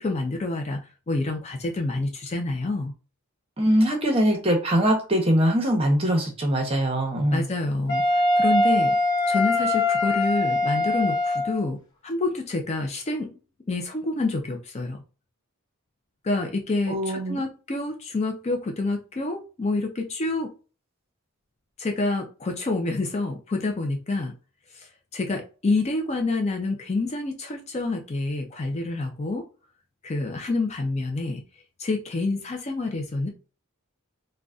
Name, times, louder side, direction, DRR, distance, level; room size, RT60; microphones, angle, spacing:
voice 1, 0.0-2.9 7.3-9.0 9.3-13.3 13.7-15.0 16.2-20.5 21.8-24.3 24.7-29.4 30.0-31.4 31.8-33.3, left 2 dB, 30° left, 3 dB, 0.4 m, -28 dB
voice 2, 3.6-7.5 16.9-17.4, equal, 25° right, 3 dB, 0.8 m, -22 dB
Wind instrument woodwind instrument, 7.9-11.6, left 2 dB, 60° left, 1.0 m, -22 dB
3.8 x 2.2 x 2.4 m, 0.35 s
head